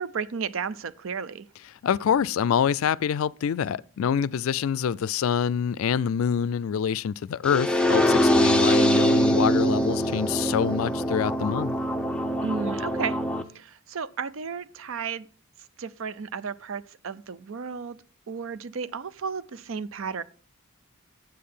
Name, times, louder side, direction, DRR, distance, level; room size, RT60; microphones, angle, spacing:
voice 1, 0.0-1.5 12.4-13.2 13.5-15.3 15.8-18.0 18.3-20.2, right 6 dB, 70° right, 0.5 m, -33 dB
voice 2, 1.8-11.8, left 7 dB, 75° left, 0.4 m, -26 dB
sound 1, 7.5-13.4, equal, 5° left, 0.6 m, -23 dB
8.6 x 7.7 x 5.5 m
head